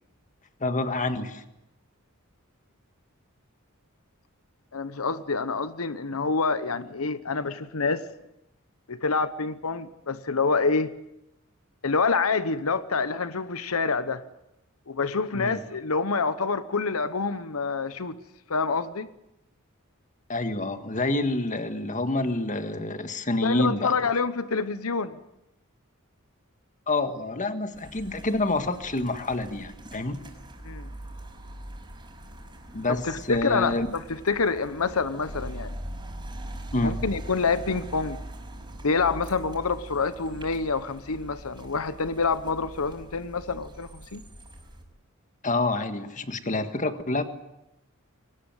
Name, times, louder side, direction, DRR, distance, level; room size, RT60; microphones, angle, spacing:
voice 1, 0.6-1.4 15.3-15.6 20.3-23.9 26.9-30.2 32.7-33.9 36.7-37.0 45.4-47.3, left 2 dB, 35° left, 9 dB, 1.8 m, -27 dB
voice 2, 4.7-8.1 8.9-10.9 11.8-14.2 14.9-18.2 18.5-19.1 23.4-25.2 30.6-30.9 33.0-35.7 36.8-38.2 38.8-44.2, left 4 dB, 85° left, 13 dB, 1.0 m, -27 dB
sound 1, 27.7-44.8, right 1 dB, 20° right, 5.6 m, -42 dB
23.0 x 19.5 x 9.0 m, 0.86 s
head